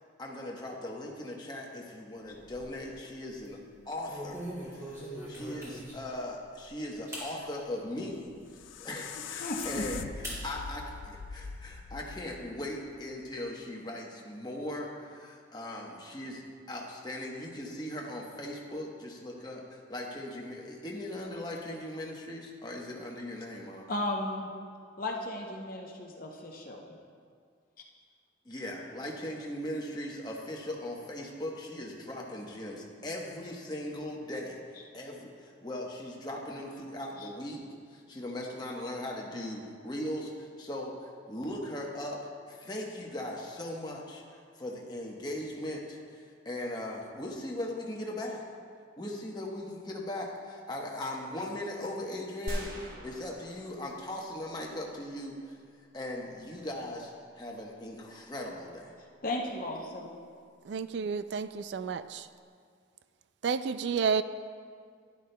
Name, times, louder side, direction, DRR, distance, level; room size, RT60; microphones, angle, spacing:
voice 1, 0.2-3.6 3.9-8.3 8.8-23.9 28.4-34.6 34.9-37.6 37.9-42.2 42.5-48.4 49.0-55.6 55.9-58.9, left 1 dB, 20° left, -2 dB, 1.0 m, -39 dB
sound 1, 2.2-2.9 3.3-3.5 4.1-6.1 6.6-6.7 7.1-7.3 7.8-7.9 8.4-8.5 8.9-9.7 10.2-10.4 10.8-11.7, equal, 15° right, 2.6 m, -42 dB
sound 2, 8.3-13.4, left 6 dB, 80° left, 0.4 m, -42 dB
voice 2, 9.4-9.8 23.9-24.5 25.0-26.9 37.2-37.3 59.2-60.1, left 1 dB, 45° left, 0 dB, 0.7 m, -35 dB
sound 3, 52.5-54.7, equal, 45° right, 1.0 m, -40 dB
voice 3, 60.7-62.3 63.4-64.2, right 6 dB, 60° right, 12 dB, 0.3 m, -30 dB
12.0 x 11.0 x 2.2 m, 2.1 s
head